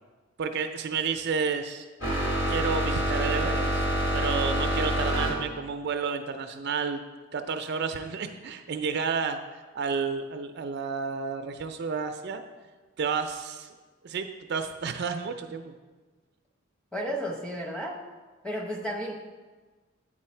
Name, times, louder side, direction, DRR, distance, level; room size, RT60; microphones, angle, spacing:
voice 1, 0.4-1.9 2.5-3.9 4.1-7.0 7.3-9.4 9.7-12.4 13.0-13.7 14.0-15.7, right 5 dB, 55° right, 7 dB, 0.4 m, -31 dB
sound 1, 2.0-5.3, right 1 dB, 80° left, 2.4 m, -26 dB
voice 2, 16.9-18.0 18.4-19.2, equal, 5° left, -2 dB, 0.8 m, -32 dB
8.5 x 4.7 x 4.3 m, 1.3 s
head